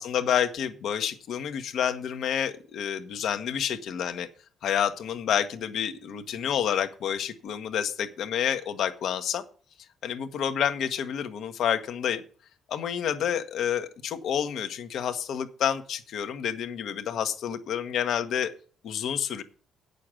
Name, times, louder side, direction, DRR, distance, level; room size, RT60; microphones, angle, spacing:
voice 1, 0.0-4.3 4.6-9.4 10.0-12.2 12.7-18.5 18.8-19.4, left 9 dB, 70° left, 8 dB, 1.2 m, -29 dB
8.4 x 6.7 x 7.6 m, 0.41 s
supercardioid pair, 60°, 0 cm